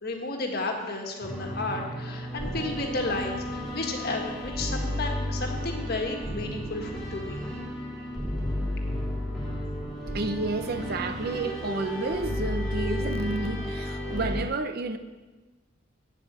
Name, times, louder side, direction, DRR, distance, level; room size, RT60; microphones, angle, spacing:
voice 1, 0.0-7.4, left 2 dB, 45° left, 2 dB, 1.6 m, -32 dB
sound 1, 1.2-14.4, left 1 dB, ahead, 2.8 m, -32 dB
voice 2, 10.1-15.0, right 3 dB, 50° right, 9 dB, 0.7 m, -31 dB
9.1 x 7.9 x 7.5 m, 1.2 s
head